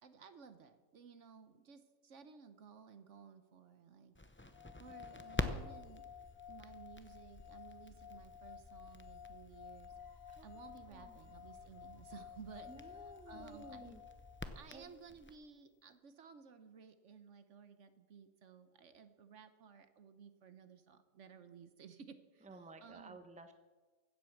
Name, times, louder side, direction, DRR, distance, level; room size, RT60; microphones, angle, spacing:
voice 1, 0.0-4.2 4.8-6.1 6.5-9.9 10.4-12.7 13.3-13.9 14.5-22.5 22.8-23.2, right 6 dB, 65° right, 10 dB, 1.2 m, -56 dB
Crackle, 4.1-15.3, left 2 dB, 15° left, 0.5 m, -48 dB
sound 1, 4.5-14.7, left 8 dB, 65° left, 0.5 m, -54 dB
sound 2, 9.9-15.4, right 2 dB, 90° left, 3.5 m, -71 dB
voice 2, 10.9-11.2 12.7-14.0 14.7-14.9 22.4-23.5, right 2 dB, 5° right, 8 dB, 0.8 m, -54 dB
16.0 x 7.9 x 7.2 m, 1.3 s
omnidirectional pair, 1.4 m